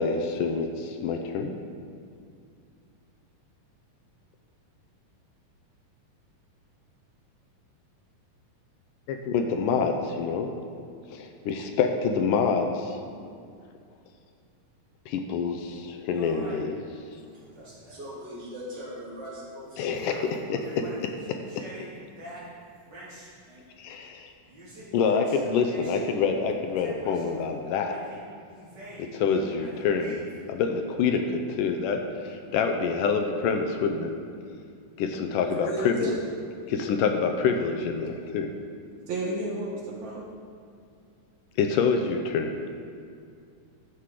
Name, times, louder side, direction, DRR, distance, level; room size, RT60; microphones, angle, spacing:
voice 1, 0.0-1.6 9.1-10.5 11.1-13.0 15.1-16.8 19.8-21.4 23.8-24.3 24.9-28.0 29.0-30.2 30.5-34.1 35.0-36.1 36.7-38.5 41.6-42.6, left 5 dB, 80° left, 5 dB, 2.2 m, -26 dB
sound 1, 16.1-18.0 18.7-18.8 19.2-19.4 19.7-23.4 24.4-26.2 26.5-27.4 27.8-29.3 29.6-30.5, right 1 dB, 30° right, 3.6 m, -46 dB
voice 2, 17.7-20.1 23.5-23.6, equal, 45° right, -6 dB, 3.1 m, -41 dB
voice 3, 35.4-36.2 39.1-40.2, right 2 dB, 65° right, -3 dB, 2.5 m, -32 dB
13.0 x 7.4 x 4.9 m, 2.3 s
omnidirectional pair, 3.9 m